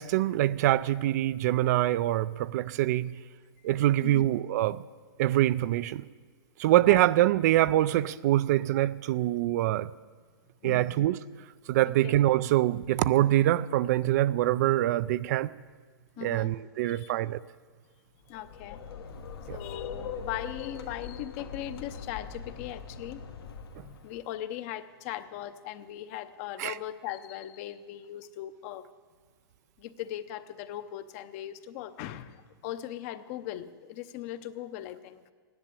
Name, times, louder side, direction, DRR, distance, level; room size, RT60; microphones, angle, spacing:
voice 1, 0.0-3.1 3.6-4.8 5.2-6.0 6.6-9.9 10.6-11.2 11.7-15.5 16.2-17.4 19.5-19.6 26.6-26.7, right 14 dB, 45° right, 0.4 m, -24 dB
voice 2, 10.6-11.0 12.0-12.3 16.2-16.5 16.8-17.1 18.3-18.9 19.5-23.3 23.8-28.9 29.8-35.2, left 12 dB, 40° left, 0.8 m, -39 dB
sound 1, 18.2-24.2, left 6 dB, 80° left, 1.5 m, -41 dB
15.0 x 10.5 x 8.3 m
hypercardioid pair, 155°, 12 cm